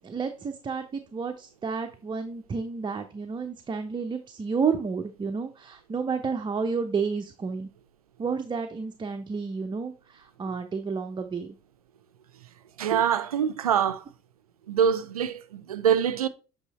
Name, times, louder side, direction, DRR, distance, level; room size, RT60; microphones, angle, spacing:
voice 1, 0.0-7.7 8.2-11.5, right 5 dB, 25° right, 0.7 m, -31 dB
voice 2, 12.8-14.0 14.7-16.3, right 8 dB, 90° right, 0.4 m, -24 dB
8.2 x 3.5 x 4.1 m
hypercardioid pair, 60°, 18 cm